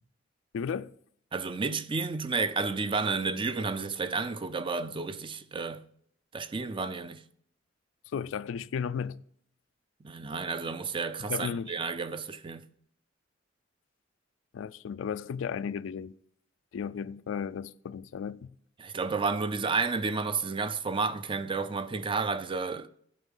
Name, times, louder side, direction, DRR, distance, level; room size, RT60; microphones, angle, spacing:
voice 1, 0.5-0.9 8.1-9.2 11.2-11.7 14.5-16.1 16.7-18.6, left 7 dB, 75° left, 0.3 m, -34 dB
voice 2, 1.3-5.8 6.3-7.2 10.0-12.7 18.8-22.9, right 4 dB, 25° right, 0.4 m, -31 dB
11.5 x 4.7 x 5.3 m
head